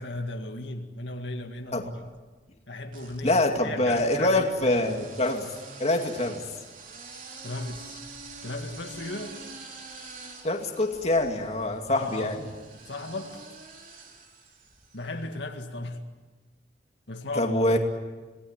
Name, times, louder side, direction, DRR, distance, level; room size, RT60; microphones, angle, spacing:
voice 1, 0.0-2.1 2.7-5.0 7.4-8.0 8.4-9.4 12.0-12.4 12.7-13.4 14.9-16.0 17.1-17.5, left 2 dB, 80° left, 2.1 m, -36 dB
sound 1, 1.5-2.2 2.9-15.2, right 4 dB, 50° right, 3.8 m, -46 dB
voice 2, 3.2-5.5 5.8-6.4 10.4-12.5 17.4-17.8, left 1 dB, 35° left, 2.5 m, -25 dB
27.0 x 18.5 x 8.9 m
head